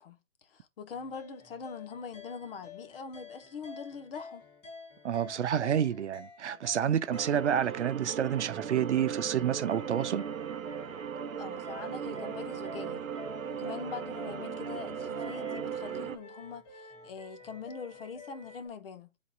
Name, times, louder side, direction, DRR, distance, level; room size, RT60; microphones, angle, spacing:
voice 1, 0.0-4.5 11.4-13.1 13.5-19.1, left 5 dB, 45° left, 1.4 m, -43 dB
sound 1, 0.9-18.7, left 4 dB, 15° left, 1.2 m, -49 dB
voice 2, 5.0-10.3, right 9 dB, 60° right, 0.8 m, -29 dB
sound 2, 7.1-16.2, right 8 dB, 90° right, 0.9 m, -38 dB
10.5 x 4.2 x 2.5 m
hypercardioid pair, 150°, 39 cm